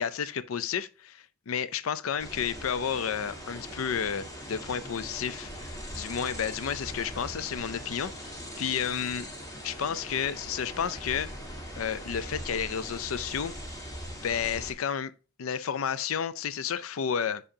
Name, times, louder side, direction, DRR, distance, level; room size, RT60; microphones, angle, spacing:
voice 1, 0.0-9.3 9.6-11.3 11.7-13.5 14.2-15.1 15.4-17.4, left 7 dB, 80° left, 0.5 m, -31 dB
sound 1, 2.2-14.7, equal, 15° left, 1.5 m, -41 dB
8.7 x 5.6 x 2.7 m
head